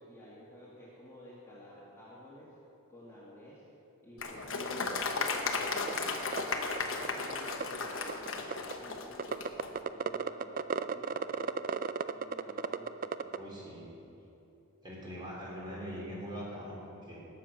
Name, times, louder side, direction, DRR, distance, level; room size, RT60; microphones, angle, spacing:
voice 1, 0.0-2.5 2.9-3.6 4.0-11.7 12.1-13.3, left 1 dB, 10° left, -8 dB, 2.1 m, -52 dB
Applause, 4.2-9.7, left 4 dB, 60° left, 1.1 m, -35 dB
sound 1, 5.9-6.0 6.3-6.4 6.8-6.9 7.0-7.6 8.1-8.7 9.2-13.4, right 5 dB, 40° right, 0.3 m, -33 dB
voice 2, 13.4-13.9 14.8-17.2, equal, 20° right, -5 dB, 3.4 m, -42 dB
19.0 x 7.4 x 5.9 m, 3.0 s
head